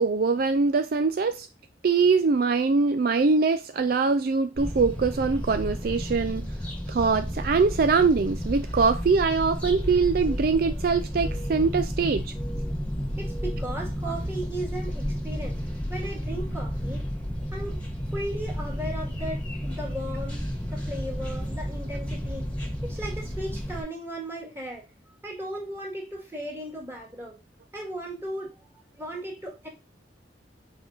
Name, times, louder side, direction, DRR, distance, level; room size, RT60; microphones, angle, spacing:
voice 1, 0.0-1.5 1.8-6.5 6.9-12.3 14.0-14.1, right 4 dB, 55° right, 0.4 m, -23 dB
sound 1, 4.6-23.8, equal, 10° left, 1.5 m, -32 dB
voice 2, 13.2-15.6 15.9-17.0 17.5-17.8 18.1-22.5 22.8-24.8 25.2-27.4 27.7-28.5 29.0-29.7, right 1 dB, 15° right, 2.0 m, -36 dB
6.2 x 4.5 x 4.0 m
head